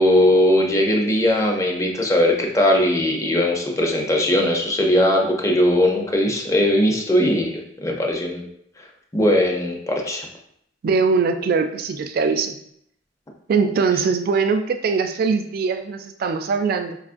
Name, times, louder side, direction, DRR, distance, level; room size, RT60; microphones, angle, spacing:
voice 1, 0.0-8.5 9.1-10.3, left 1 dB, 15° left, 1 dB, 0.5 m, -19 dB
voice 2, 10.8-12.6 13.5-17.0, right 5 dB, 55° right, 7 dB, 0.3 m, -21 dB
4.8 x 2.4 x 2.5 m, 0.72 s
head